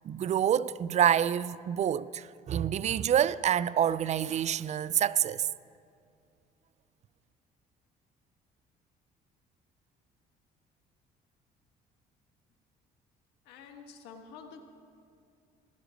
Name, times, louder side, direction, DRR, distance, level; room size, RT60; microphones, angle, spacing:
voice 1, 0.0-5.5, right 9 dB, 40° right, 0.4 m, -27 dB
voice 2, 13.4-14.6, left 6 dB, 90° left, 1.5 m, -48 dB
16.5 x 11.5 x 5.1 m
cardioid pair, 110°, 17 cm